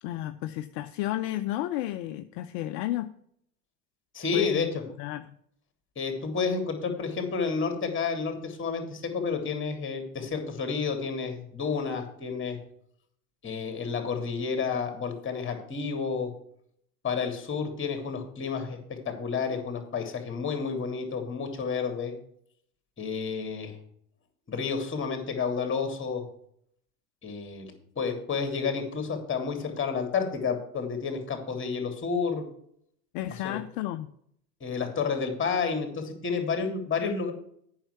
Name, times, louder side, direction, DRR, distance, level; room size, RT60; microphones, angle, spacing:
voice 1, 0.0-3.1 4.3-4.7 5.0-5.3 33.1-34.1, left 14 dB, 60° left, 9 dB, 0.7 m, -32 dB
voice 2, 4.1-4.8 6.0-12.6 13.4-16.3 17.0-22.1 23.0-23.8 24.5-26.2 27.2-32.4 33.4-33.6 34.6-37.3, left 5 dB, 25° left, 5 dB, 2.8 m, -30 dB
8.9 x 5.7 x 8.0 m, 0.68 s
hypercardioid pair, 80°, 47 cm